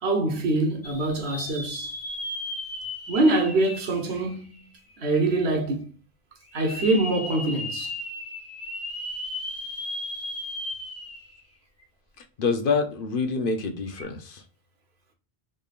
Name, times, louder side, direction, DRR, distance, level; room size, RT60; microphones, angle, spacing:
voice 1, 0.0-1.9 3.1-4.6 5.0-5.9 6.5-7.9, right 2 dB, 75° right, 1.2 m, -24 dB
sound 1, 0.8-4.8 5.3-5.4 6.5-11.4 11.8-11.9 13.9-14.0, left 1 dB, 15° left, 0.6 m, -35 dB
voice 2, 12.2-14.4, left 4 dB, 60° left, 0.8 m, -27 dB
3.8 x 3.4 x 2.4 m
omnidirectional pair, 1.1 m